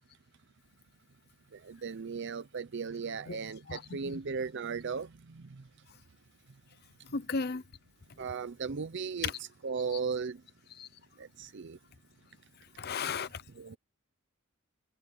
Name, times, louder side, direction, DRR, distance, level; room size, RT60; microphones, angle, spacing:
voice 1, 1.5-5.7 8.2-9.3 9.6-10.4 11.2-11.8 13.6-13.8, right 5 dB, 60° right, 0.6 m, -37 dB
voice 2, 3.7-4.2 7.1-7.6 9.2-9.4 10.8-10.9 12.8-13.4, left 5 dB, 50° left, 0.7 m, -35 dB
head